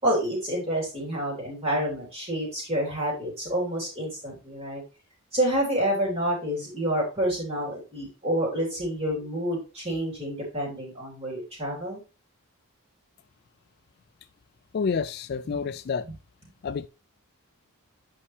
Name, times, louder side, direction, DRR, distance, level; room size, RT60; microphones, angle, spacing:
voice 1, 0.0-4.8 5.3-12.0 15.5-15.6, right 1 dB, 25° right, 3.4 m, -28 dB
voice 2, 14.7-16.1 16.6-16.9, left 5 dB, 45° left, 0.3 m, -29 dB
8.4 x 5.5 x 3.2 m
head